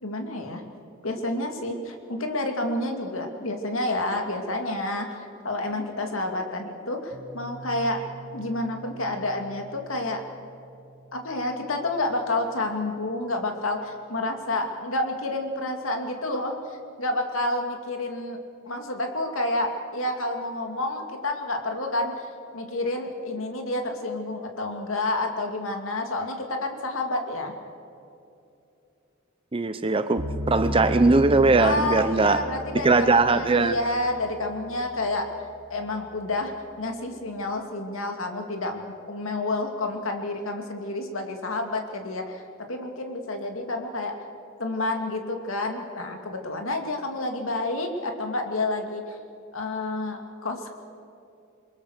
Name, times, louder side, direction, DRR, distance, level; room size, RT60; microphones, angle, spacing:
voice 1, 0.0-0.6 1.0-5.1 5.4-8.0 8.3-10.2 11.1-27.5 31.6-35.3 35.7-42.4 42.7-44.2 44.6-49.2 49.5-50.7, left 2 dB, 80° left, 4 dB, 2.5 m, -29 dB
Piano, 7.1-14.5, right 2 dB, 10° left, 4.5 m, -48 dB
voice 2, 29.5-32.4 32.8-33.8, right 3 dB, 25° right, 10 dB, 0.6 m, -20 dB
sound 1, 30.2-35.3, equal, 65° right, 1.9 m, -34 dB
28.0 x 21.5 x 6.6 m, 2.7 s
head